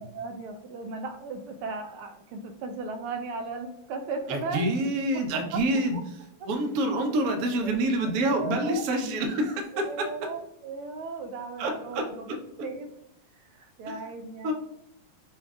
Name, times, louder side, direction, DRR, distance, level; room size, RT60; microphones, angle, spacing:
voice 1, 0.0-4.7 5.1-5.2 5.5-5.6 7.6-8.8 9.7-12.9 13.3-14.5, right 3 dB, 80° right, 6 dB, 1.5 m, -36 dB
voice 2, 4.3-6.0 6.5-9.8 11.6-12.0 14.4-14.5, right 1 dB, 65° right, 3 dB, 0.9 m, -27 dB
6.3 x 2.4 x 3.5 m, 0.83 s
omnidirectional pair, 2.4 m